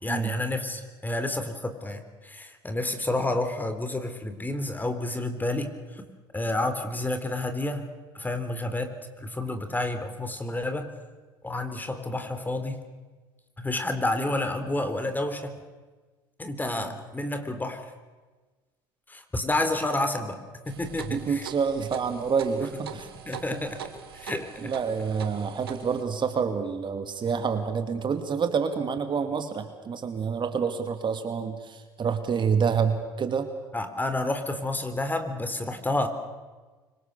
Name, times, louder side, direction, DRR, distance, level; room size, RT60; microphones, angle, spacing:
voice 1, 0.0-5.7 6.3-7.9 8.1-10.9 11.4-12.8 13.6-15.5 16.4-17.8 19.1-20.4 20.7-21.5 23.3-23.8 24.1-24.7 33.7-36.1, left 2 dB, 15° left, 8 dB, 3.9 m, -30 dB
sound 1, 20.7-26.0, right 8 dB, 90° right, 1.9 m, -42 dB
voice 2, 21.0-23.1 23.5-23.6 24.2-24.3 24.6-33.5, right 6 dB, 40° right, 7 dB, 2.5 m, -28 dB
25.5 x 24.5 x 6.9 m, 1.3 s
hypercardioid pair, 65°, 12 cm